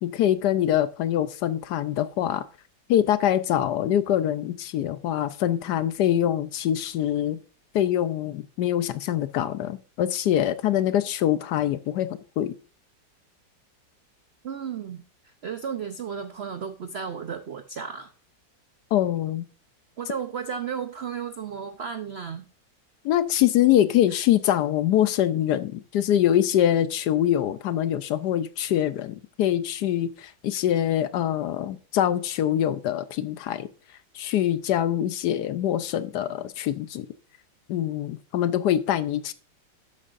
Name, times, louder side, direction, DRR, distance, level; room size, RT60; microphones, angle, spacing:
voice 1, 0.0-2.4 2.9-7.4 7.7-12.1 12.4-12.5 18.9-19.5 23.0-33.7 34.1-37.1 37.7-39.3, left 11 dB, 70° left, 1.1 m, -24 dB
voice 2, 14.4-18.1 20.0-22.5 24.1-24.2, right 7 dB, 70° right, 0.6 m, -34 dB
12.0 x 8.5 x 2.5 m
omnidirectional pair, 2.0 m